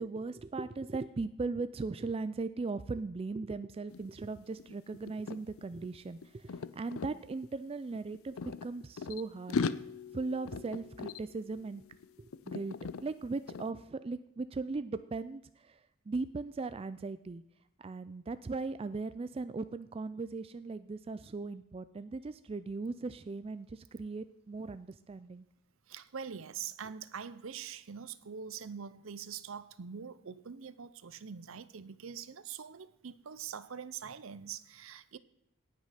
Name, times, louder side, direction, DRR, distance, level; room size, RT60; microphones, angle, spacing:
voice 1, 0.0-9.7 10.1-11.8 12.2-17.4 17.8-25.4, right 3 dB, 25° right, 13 dB, 0.3 m, -38 dB
Nikon Telezoom working, 3.9-4.1 4.3-7.1 7.9-9.2 9.5-12.1 12.3-13.0 13.5-13.7, left 5 dB, 70° left, 0.5 m, -39 dB
voice 2, 25.9-35.2, right 7 dB, 65° right, 16 dB, 0.6 m, -44 dB
18.0 x 6.2 x 5.8 m, 0.82 s
head